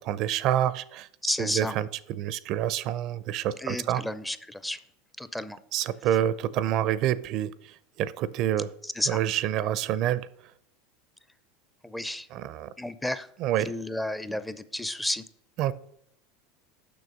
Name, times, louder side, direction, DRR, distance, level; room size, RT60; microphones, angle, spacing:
voice 1, 0.0-1.1 1.4-4.0 5.7-8.7 9.1-10.2 12.3-12.7 13.4-13.7 15.6-15.7, right 11 dB, 55° right, 17 dB, 0.4 m, -27 dB
voice 2, 1.2-1.7 3.6-4.8 5.2-5.6 8.8-9.2 11.8-12.3 12.8-13.3 13.6-15.2, left 1 dB, 5° left, 13 dB, 0.4 m, -32 dB
6.9 x 6.0 x 5.1 m, 0.74 s
hypercardioid pair, 100°, 0 cm